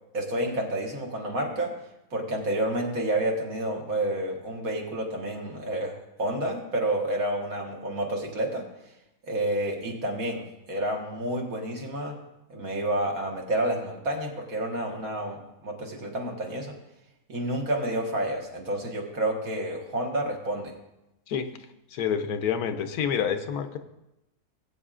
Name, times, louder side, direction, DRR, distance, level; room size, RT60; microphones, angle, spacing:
voice 1, 0.1-1.7 2.1-8.6 9.3-12.1 12.5-16.7 17.3-20.7, right 1 dB, 70° right, 0 dB, 2.0 m, -29 dB
voice 2, 21.9-23.8, left 7 dB, 85° left, 9 dB, 1.2 m, -28 dB
19.0 x 8.5 x 2.5 m, 0.91 s
omnidirectional pair, 1.5 m